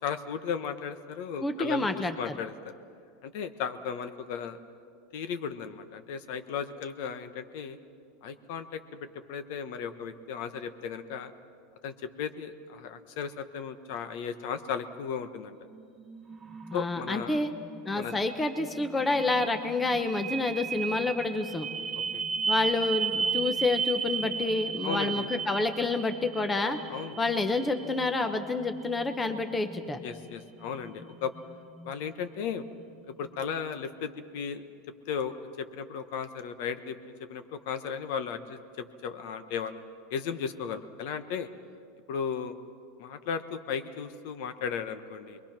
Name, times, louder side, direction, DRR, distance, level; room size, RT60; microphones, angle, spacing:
voice 1, 0.0-2.5 3.2-4.6 5.1-7.8 8.2-11.3 11.8-15.6 16.7-17.4 18.0-18.1 22.1-22.2 24.8-25.3 26.9-27.2 30.0-31.3 31.8-32.7 33.1-34.7 35.1-37.0 37.3-39.8 40.1-41.5 42.1-42.6 43.0-45.4, left 7 dB, 60° left, 10 dB, 1.2 m, -35 dB
voice 2, 1.4-2.3 16.7-17.5 17.8-21.7 22.5-26.8 27.2-30.0, left 3 dB, 10° left, 8 dB, 0.9 m, -28 dB
sound 1, 15.6-33.7, right 5 dB, 15° right, 1.6 m, -36 dB
28.0 x 22.0 x 6.0 m, 2.3 s
supercardioid pair, 155°, 0 cm